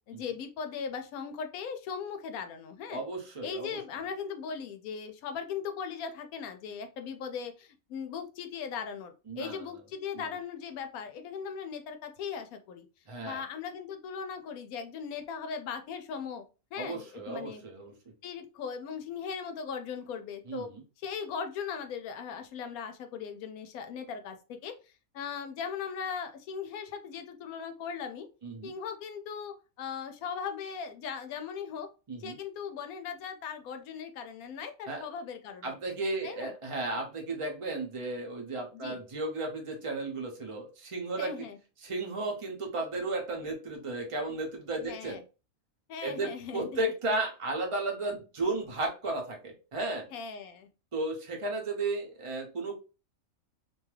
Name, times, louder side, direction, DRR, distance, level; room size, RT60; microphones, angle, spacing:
voice 1, 0.1-3.0 3.4-12.9 13.2-16.4 16.7-17.6 18.2-20.7 21.0-24.7 25.1-28.3 28.6-31.9 32.2-35.8 36.2-36.5 38.7-39.0 41.2-41.6 44.8-45.2 45.9-46.7 50.1-50.7, left 6 dB, 80° left, 7 dB, 1.0 m, -38 dB
voice 2, 2.9-3.8 9.3-9.6 10.1-10.3 13.1-13.4 16.8-17.9 20.5-20.8 28.4-28.7 32.1-32.4 34.9-35.0 35.6-41.4 41.8-45.2 46.0-50.1 50.9-52.7, right 2 dB, 35° right, 1 dB, 0.6 m, -34 dB
2.7 x 2.3 x 3.1 m, 0.32 s
omnidirectional pair, 1.5 m